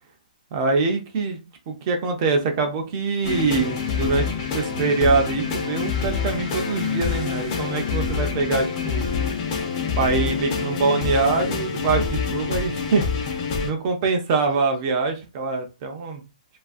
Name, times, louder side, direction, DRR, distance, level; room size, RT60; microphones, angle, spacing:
voice 1, 0.5-1.4 1.7-9.0 10.0-16.2, right 4 dB, 25° right, 0.4 m, -24 dB
sound 1, 3.2-13.7, left 6 dB, 25° left, 0.5 m, -26 dB
2.6 x 2.4 x 2.4 m
hypercardioid pair, 165°, 4 cm